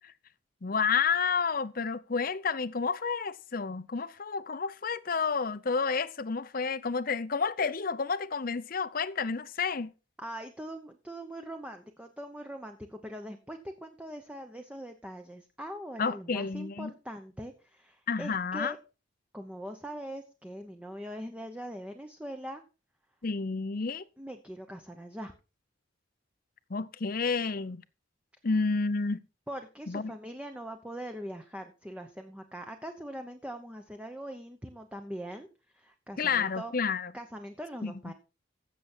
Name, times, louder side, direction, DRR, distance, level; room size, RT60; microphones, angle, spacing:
voice 1, 0.6-9.9 16.0-16.9 18.1-18.7 23.2-24.0 26.7-27.8 28.4-29.2 29.9-30.1 36.2-37.1 37.8-38.1, left 5 dB, 45° left, 0.6 m, -30 dB
voice 2, 10.2-18.8 19.3-22.6 24.2-25.3 29.5-35.5 35.7-36.7 37.1-38.1, equal, 5° right, 0.9 m, -42 dB
15.5 x 7.0 x 4.4 m
head